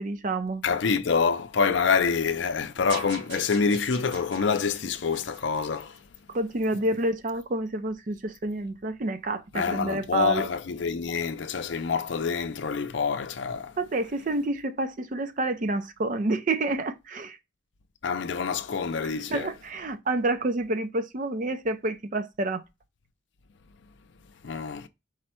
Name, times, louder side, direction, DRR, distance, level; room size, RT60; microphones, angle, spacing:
voice 1, 0.0-0.6 6.3-10.5 13.8-17.4 19.3-22.6, right 2 dB, 45° right, 0.5 m, -28 dB
voice 2, 0.6-6.0 9.5-13.7 18.0-19.5 24.4-24.9, left 5 dB, 75° left, 0.5 m, -26 dB
sound 1, 2.9-6.2, right 3 dB, 75° right, 2.8 m, -43 dB
4.9 x 2.1 x 4.3 m
head